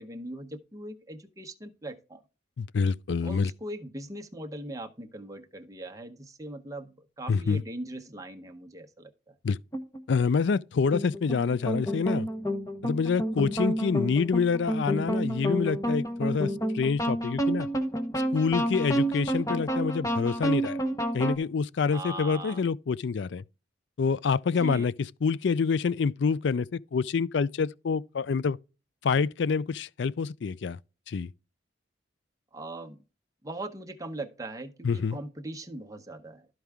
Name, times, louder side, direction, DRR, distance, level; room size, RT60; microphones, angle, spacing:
voice 1, 0.0-2.2 3.2-9.3 21.9-22.6 24.6-24.9 32.5-33.0 33.4-36.5, right 1 dB, 15° right, 0.9 m, -40 dB
voice 2, 2.6-3.5 7.3-7.6 9.4-9.6 10.1-12.3 12.8-17.7 18.3-20.8 21.1-23.4 24.0-24.9 25.2-28.6 29.0-30.8 31.1-31.3 34.8-35.2, left 5 dB, 65° left, 0.4 m, -27 dB
sound 1, 9.7-10.0 10.9-21.4, equal, 15° left, 1.0 m, -29 dB
13.0 x 4.6 x 3.6 m
head